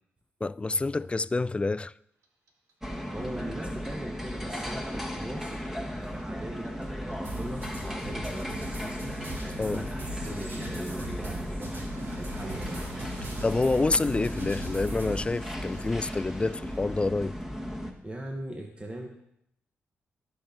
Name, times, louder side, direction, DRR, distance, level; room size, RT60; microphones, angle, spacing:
voice 1, 0.4-1.9 9.6-9.8 13.2-17.4, left 3 dB, 25° left, 0.3 m, -28 dB
Clock, 2.2-5.2 5.5-8.5 8.8-17.6, right 4 dB, 90° right, 1.5 m, -48 dB
sound 1, 2.8-17.9, equal, 10° right, 1.5 m, -36 dB
voice 2, 3.1-5.6 5.9-6.7 7.0-9.1 9.7-13.3 18.0-19.1, right 1 dB, 25° right, 1.4 m, -40 dB
sound 2, 7.2-15.2, equal, 55° right, 3.2 m, -40 dB
16.5 x 5.9 x 4.0 m
cardioid pair, 60°, 5 cm